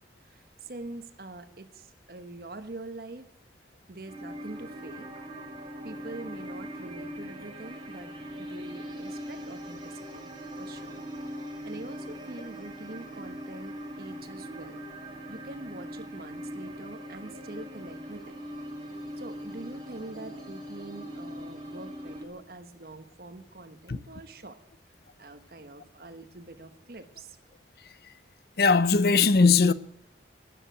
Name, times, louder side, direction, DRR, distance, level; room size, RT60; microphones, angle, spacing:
voice 1, 0.2-3.3 3.9-5.2 5.8-10.3 10.6-11.0 11.6-14.8 15.3-18.4 19.2-24.6 25.2-27.4, right 2 dB, 55° right, 1.2 m, -44 dB
sound 1, 4.1-22.2, equal, 25° right, 2.9 m, -41 dB
voice 2, 28.6-29.7, left 4 dB, 55° left, 0.7 m, -19 dB
13.5 x 9.9 x 8.0 m
head